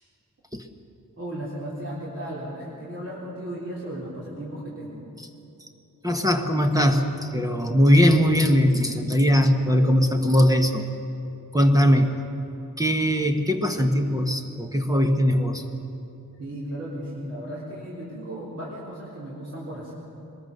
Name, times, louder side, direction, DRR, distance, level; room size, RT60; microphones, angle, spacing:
voice 1, 1.2-5.0 16.3-19.9, right 1 dB, 45° right, -7 dB, 3.7 m, -35 dB
voice 2, 6.0-10.8 11.5-12.1 12.8-15.6, equal, 10° right, 4 dB, 1.1 m, -20 dB
22.5 x 21.0 x 6.7 m, 2.9 s
wide cardioid pair, 175°, 34 cm